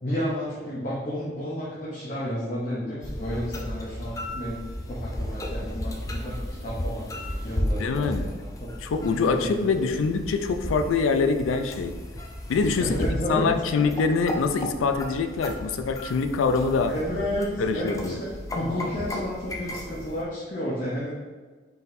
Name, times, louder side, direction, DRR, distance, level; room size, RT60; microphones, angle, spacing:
voice 1, 0.0-4.6 4.9-7.1 7.4-8.5 9.4-9.9 12.8-13.8 16.9-21.1, equal, 40° left, -8 dB, 0.7 m, -31 dB
sound 1, 3.0-20.2, left 1 dB, 15° left, 0.3 m, -34 dB
voice 2, 7.8-8.3 8.8-12.0 12.5-16.9 17.6-18.2, left 4 dB, 90° left, 8 dB, 0.3 m, -24 dB
4.0 x 3.9 x 2.6 m, 1.4 s
head